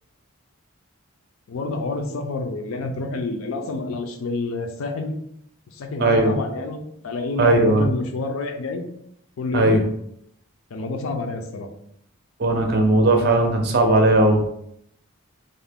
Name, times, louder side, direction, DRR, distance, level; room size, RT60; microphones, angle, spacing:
voice 1, 1.5-5.1 5.7-8.8 9.4-9.8 10.7-11.7, left 3 dB, 80° left, 5 dB, 0.4 m, -28 dB
voice 2, 6.0-6.3 7.4-7.9 9.5-9.8 12.4-14.4, right 2 dB, 45° right, 4 dB, 0.4 m, -17 dB
2.5 x 2.1 x 3.4 m, 0.72 s
head